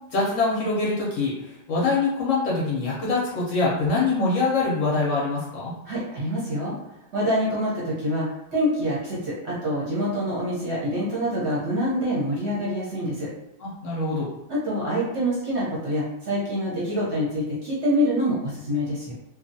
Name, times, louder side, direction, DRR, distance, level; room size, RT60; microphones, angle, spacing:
voice 1, 0.1-5.7 13.6-14.3, left 3 dB, 60° left, -5 dB, 0.9 m, -24 dB
voice 2, 5.8-6.7 7.1-8.3 8.5-13.3 14.5-19.1, equal, 55° right, -7 dB, 0.9 m, -26 dB
2.7 x 2.2 x 2.6 m, 0.91 s
omnidirectional pair, 1.7 m